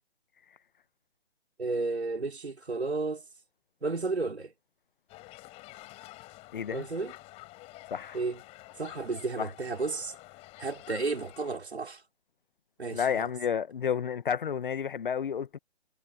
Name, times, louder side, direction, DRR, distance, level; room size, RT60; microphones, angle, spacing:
voice 1, 1.6-3.2 3.8-4.5 6.7-7.2 8.1-8.4 8.8-10.1 10.6-12.0 12.8-13.3, right 3 dB, 80° right, 4.3 m, -32 dB
sound 1, 5.1-11.6, left 20 dB, 20° left, 6.2 m, -49 dB
voice 2, 6.5-6.8 7.9-8.2 9.4-9.5 12.9-15.6, left 7 dB, 50° left, 1.3 m, -31 dB
figure-of-eight pair, 145°, 32 cm